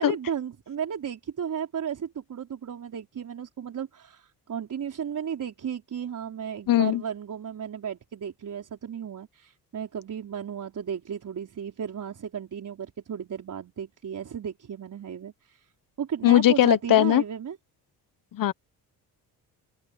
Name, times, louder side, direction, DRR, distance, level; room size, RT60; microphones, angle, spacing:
voice 1, 0.0-15.7 16.0-17.6, right 8 dB, 50° right, 4.5 m, -34 dB
voice 2, 6.7-7.0 16.2-17.2 18.3-18.5, left 13 dB, 55° left, 1.2 m, -19 dB
open air
supercardioid pair, 75°, 39 cm